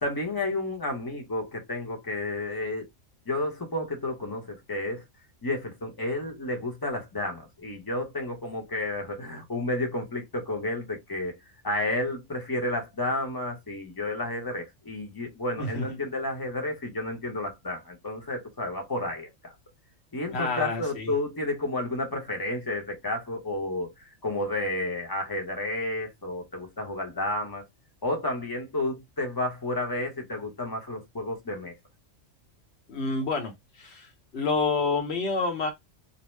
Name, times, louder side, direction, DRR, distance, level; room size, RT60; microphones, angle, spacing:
voice 1, 0.0-2.9 3.3-5.0 5.4-11.3 11.6-19.5 20.1-27.6 28.0-31.7, left 2 dB, 20° left, 0.8 m, -31 dB
voice 2, 20.3-21.1 32.9-35.7, left 3 dB, 55° left, 1.2 m, -28 dB
2.7 x 2.1 x 3.1 m
omnidirectional pair, 1.3 m